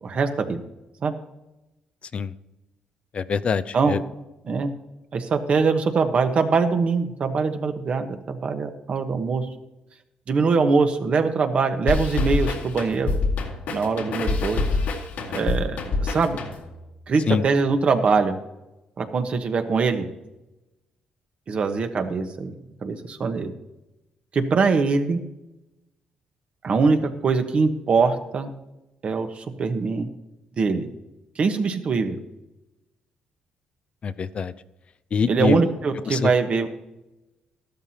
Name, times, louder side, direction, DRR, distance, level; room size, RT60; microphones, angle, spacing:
voice 1, 0.0-0.6 1.0-1.1 3.7-4.0 4.5-4.7 5.1-9.5 10.3-13.2 13.7-14.6 15.3-16.4 17.1-18.3 19.0-20.1 21.5-23.5 24.3-25.2 26.6-27.0 27.2-28.5 29.0-30.1 30.6-30.9 31.4-32.2 35.3-36.7, right 4 dB, 50° right, 7 dB, 1.2 m, -22 dB
voice 2, 3.1-4.0 17.3-17.4 34.0-34.5 35.1-35.6 36.1-36.3, left 6 dB, 45° left, 14 dB, 0.5 m, -24 dB
sound 1, 11.9-16.8, left 3 dB, 80° left, 2.0 m, -26 dB
13.0 x 12.0 x 2.9 m, 0.96 s
cardioid pair, 100°, 3 cm